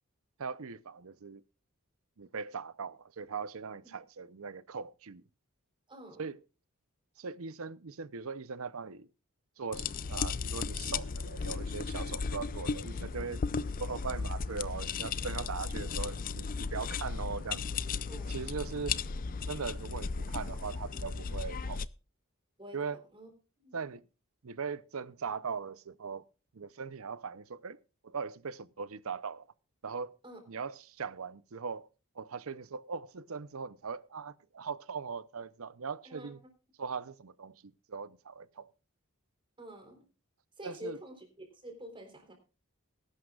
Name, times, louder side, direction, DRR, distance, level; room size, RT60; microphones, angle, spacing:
voice 1, 0.4-1.4 2.2-5.2 6.2-6.4 7.2-9.1 9.6-13.4 13.8-17.8 18.3-19.0 19.4-21.9 22.7-23.0 23.7-24.1 24.4-26.2 26.5-29.5 29.8-30.2 30.5-31.9 32.2-36.4 36.8-38.7 40.6-41.0, right 5 dB, 75° right, 0.7 m, -40 dB
voice 2, 5.9-6.2 18.1-18.5 22.6-22.8 23.1-23.3 23.6-23.8 30.2-30.4 36.0-36.3 39.6-40.0 40.6-41.2 41.5-42.3, equal, 25° right, 3.8 m, -47 dB
sound 1, 9.7-21.9, left 5 dB, 40° left, 0.5 m, -35 dB
20.5 x 11.5 x 2.4 m
head